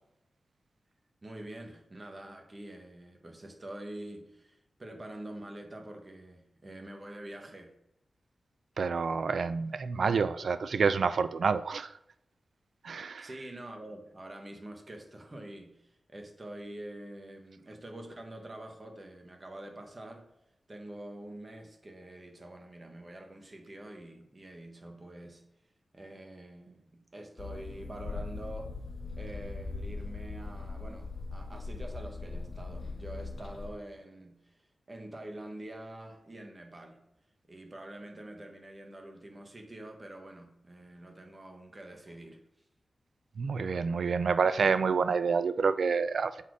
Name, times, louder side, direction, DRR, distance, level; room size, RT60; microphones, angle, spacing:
voice 1, 1.2-7.7 13.2-20.3 20.7-25.4 25.9-28.7 29.1-37.0 37.5-42.4, right 1 dB, 30° right, 3 dB, 1.3 m, -46 dB
voice 2, 8.8-11.9 12.8-13.3 43.4-46.4, right 5 dB, 70° right, 13 dB, 0.4 m, -28 dB
sound 1, 27.4-33.7, left 3 dB, 55° left, 1.6 m, -40 dB
6.9 x 4.2 x 4.7 m, 0.83 s
wide cardioid pair, 90°, 0 cm